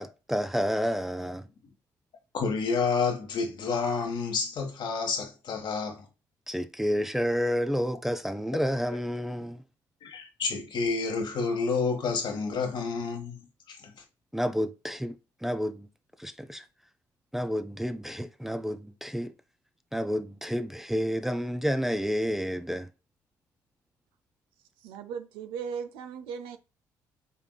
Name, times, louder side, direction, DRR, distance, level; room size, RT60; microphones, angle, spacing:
voice 1, 0.0-1.5 6.5-9.6 14.3-15.9 16.2-16.6 17.3-19.3 19.9-22.9, equal, 5° right, 0.5 m, -30 dB
voice 2, 2.3-6.0 10.0-13.4 13.7-13.9, left 5 dB, 60° left, 1.3 m, -29 dB
voice 3, 24.8-26.6, right 6 dB, 80° right, 0.5 m, -37 dB
5.5 x 3.6 x 2.3 m
supercardioid pair, 60°, 9 cm